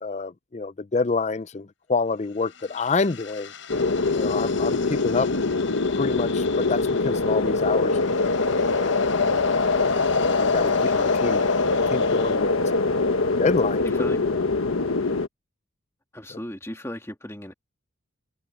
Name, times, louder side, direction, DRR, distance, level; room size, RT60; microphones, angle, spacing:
voice 1, 0.0-3.5 4.0-5.3 6.0-8.9 9.5-9.6 10.4-10.7 11.0-11.4 11.9-12.6 13.4-13.8, left 4 dB, 35° left, 0.5 m, -27 dB
sound 1, 2.1-12.4, left 8 dB, 65° left, 7.5 m, -44 dB
sound 2, 3.7-15.3, left 3 dB, 80° left, 1.4 m, -23 dB
voice 2, 13.8-14.2 16.1-17.5, left 1 dB, 15° left, 2.1 m, -36 dB
head